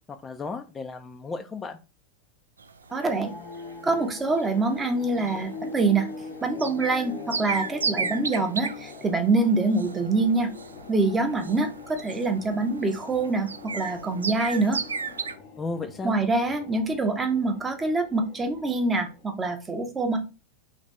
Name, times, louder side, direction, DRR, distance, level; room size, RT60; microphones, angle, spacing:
voice 1, 0.1-1.8 15.6-16.2, left 4 dB, 15° left, 6 dB, 0.4 m, -34 dB
sound 1, 2.6-15.4, right 5 dB, 75° right, 0.3 m, -35 dB
sound 2, 2.9-19.5, left 5 dB, 45° left, 0.7 m, -43 dB
voice 2, 2.9-3.3 3.8-6.1 6.4-10.5 10.9-14.8 16.0-20.2, right 3 dB, 15° right, 6 dB, 0.7 m, -25 dB
3.2 x 2.6 x 3.1 m, 0.32 s
figure-of-eight pair, 90°, 0 cm